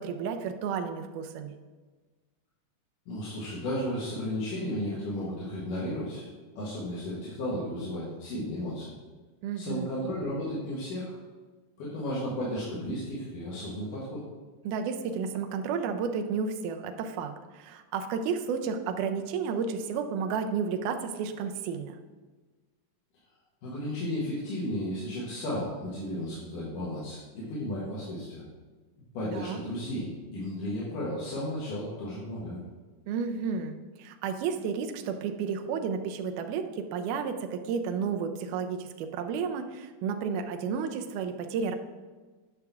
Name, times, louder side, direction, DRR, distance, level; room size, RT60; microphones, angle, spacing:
voice 1, 0.0-1.6 9.4-9.9 14.6-22.0 29.3-29.6 33.1-41.8, right 6 dB, 80° right, 6 dB, 2.1 m, -32 dB
voice 2, 3.1-6.3 6.6-8.9 9.6-11.2 11.8-14.2 23.6-28.4 29.1-32.6, left 1 dB, 85° left, -7 dB, 3.0 m, -34 dB
9.7 x 5.9 x 3.5 m, 1.3 s
omnidirectional pair, 3.6 m